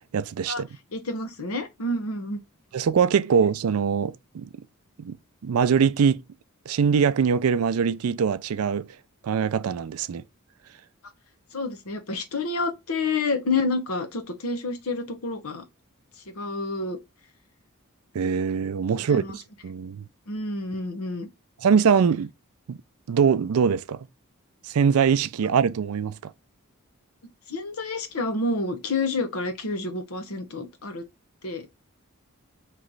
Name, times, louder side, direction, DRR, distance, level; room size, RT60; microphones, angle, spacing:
voice 1, 0.1-0.7 2.7-4.5 5.0-5.2 5.4-6.2 6.7-8.9 9.2-10.2 18.1-20.0 21.6-22.3 22.7-22.8 23.1-24.1 24.7-26.3, right 6 dB, 80° right, 0.4 m, -23 dB
voice 2, 0.9-2.4 11.5-15.6 16.4-17.0 19.1-19.4 20.3-21.3 27.5-31.0 31.4-31.7, left 3 dB, 80° left, 0.9 m, -29 dB
3.1 x 3.0 x 3.8 m
head